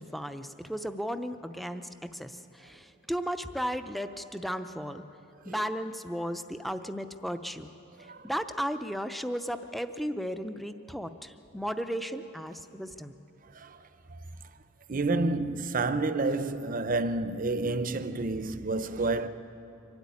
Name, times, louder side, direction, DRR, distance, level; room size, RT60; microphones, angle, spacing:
voice 1, 0.0-5.0 5.5-7.7 8.2-13.1, equal, ahead, 0.6 m, -35 dB
voice 2, 8.0-8.3 13.5-14.2 14.9-19.3, right 3 dB, 40° right, 0.7 m, -30 dB
24.0 x 12.5 x 9.6 m
head